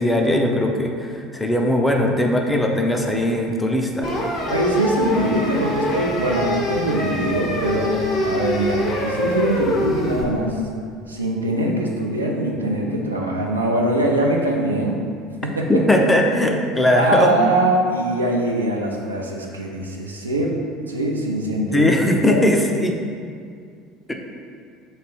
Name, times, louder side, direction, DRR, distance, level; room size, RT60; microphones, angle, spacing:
voice 1, 0.0-4.1 15.7-17.5 21.7-23.0 24.1-24.2, left 1 dB, 10° left, 2 dB, 0.4 m, -19 dB
sound 1, 4.0-10.2, left 1 dB, 50° left, 0.7 m, -24 dB
voice 2, 4.5-10.6 11.1-15.0 15.4-15.8 16.9-20.6 20.9-21.9 22.3-22.5, right 1 dB, 90° right, -1 dB, 0.4 m, -22 dB
3.1 x 2.5 x 4.4 m, 2.2 s
figure-of-eight pair, 65°, 0 cm